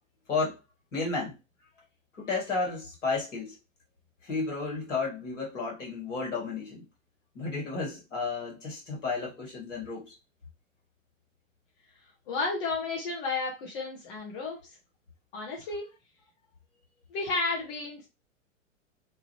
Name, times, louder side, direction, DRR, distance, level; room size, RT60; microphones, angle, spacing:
voice 1, 0.3-0.6 0.9-1.4 2.1-3.6 4.2-6.9 7.4-10.2, left 4 dB, 65° left, 1.8 m, -32 dB
voice 2, 12.3-14.6 15.3-15.9 17.1-18.1, left 3 dB, 40° left, 1.1 m, -32 dB
2.9 x 2.5 x 3.1 m
figure-of-eight pair, 100°, 40 cm